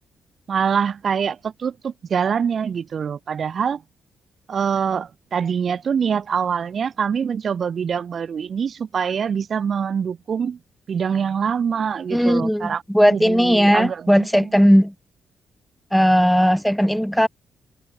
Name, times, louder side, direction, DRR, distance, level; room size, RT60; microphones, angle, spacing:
voice 1, 0.5-3.8 4.5-10.6 10.9-14.5, right 7 dB, 55° right, 1.2 m, -24 dB
voice 2, 12.1-14.9 15.9-17.3, equal, ahead, 3.7 m, -17 dB
cardioid pair, 90°, 0 cm